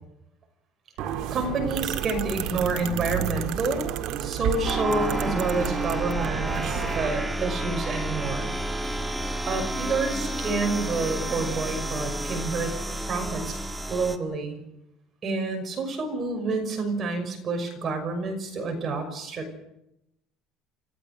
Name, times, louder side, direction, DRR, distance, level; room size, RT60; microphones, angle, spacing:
sound 1, 1.0-7.1, right 9 dB, 60° right, 2.0 m, -31 dB
voice 1, 1.3-3.8 4.2-8.5 9.5-12.7 13.0-13.5 13.9-14.6 15.2-19.6, right 3 dB, 30° right, 4 dB, 5.9 m, -29 dB
sound 2, 4.6-14.2, right 1 dB, 5° right, 1.9 m, -30 dB
29.5 x 15.0 x 6.7 m, 0.85 s
cardioid pair, 145°, 0 cm